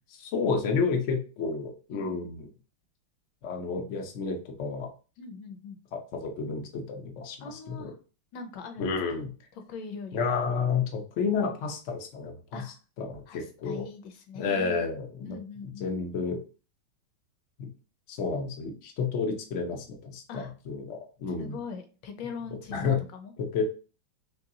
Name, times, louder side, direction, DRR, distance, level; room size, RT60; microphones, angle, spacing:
voice 1, 0.2-2.5 3.4-4.9 5.9-7.9 8.8-9.3 10.1-12.6 13.0-13.8 14.3-15.4 15.6-16.4 17.6-17.7 18.1-21.6 22.7-23.0 23.4-23.6, left 5 dB, 90° left, 2 dB, 0.6 m, -30 dB
voice 2, 1.9-2.3 5.2-5.8 7.4-8.0 8.3-9.2 9.7-10.3 12.5-12.8 13.3-14.9 15.2-15.9 20.3-20.5 21.4-23.3, left 5 dB, 70° left, 6 dB, 1.3 m, -41 dB
4.0 x 3.0 x 2.7 m, 0.36 s
omnidirectional pair, 2.3 m